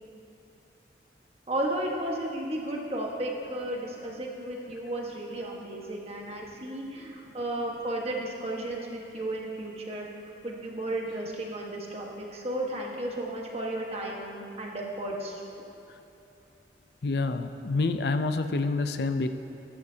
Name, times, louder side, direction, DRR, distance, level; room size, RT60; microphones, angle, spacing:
voice 1, 1.5-10.1 10.4-15.4, right 1 dB, 35° right, -1 dB, 1.4 m, -34 dB
voice 2, 17.0-19.4, left 3 dB, 60° left, 9 dB, 0.5 m, -27 dB
14.5 x 13.0 x 2.8 m, 2.7 s
head